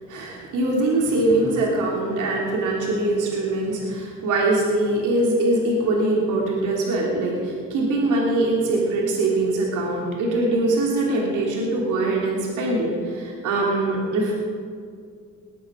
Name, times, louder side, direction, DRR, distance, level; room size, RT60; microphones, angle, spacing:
voice 1, 0.1-14.4, right 2 dB, 85° right, -2 dB, 3.2 m, -22 dB
20.5 x 8.8 x 6.2 m, 2.2 s
cardioid pair, 90°, 30 cm